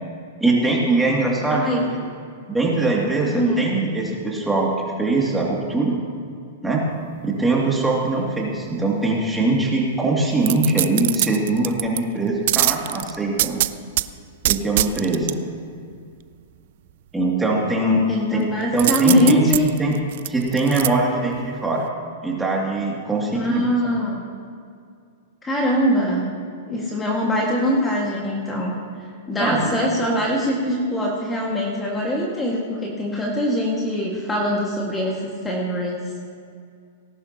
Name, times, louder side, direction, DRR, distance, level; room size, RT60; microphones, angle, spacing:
voice 1, 0.4-2.0 2.5-6.0 6.6-6.8 7.2-13.6 14.5-15.3 17.1-18.0 18.3-18.4 18.7-19.5 19.8-19.9 20.3-21.9 22.2-23.6 29.4-29.8, right 2 dB, 10° right, -3 dB, 2.6 m, -22 dB
voice 2, 1.5-1.9 3.3-3.6 18.1-19.7 23.3-24.2 25.4-26.3 26.7-28.8 29.3-36.1, equal, 15° left, -2 dB, 1.9 m, -22 dB
sound 1, 10.4-12.0 12.5-14.1 14.4-15.3 18.8-20.9 21.3-21.4, right 15 dB, 60° right, 0.4 m, -22 dB
18.5 x 11.5 x 3.0 m, 2.3 s
hypercardioid pair, 115°, 0 cm